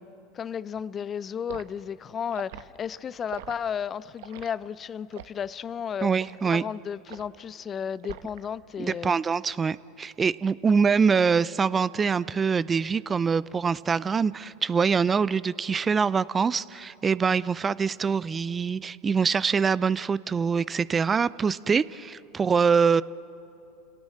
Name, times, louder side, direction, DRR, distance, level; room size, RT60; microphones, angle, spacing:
voice 1, 0.3-6.1 6.4-9.2, left 7 dB, 30° left, 0.5 m, -33 dB
Liquid, 1.5-1.7 2.3-2.7 3.3-3.6 4.2-4.5 5.1-5.4 6.2-6.4 7.1-7.4 8.0-8.5 8.8-9.1, right 12 dB, 70° right, 1.0 m, -42 dB
voice 2, 6.0-6.6 8.8-23.0, right 5 dB, 25° right, 0.4 m, -24 dB
29.5 x 17.5 x 7.7 m
hypercardioid pair, 90°, 0 cm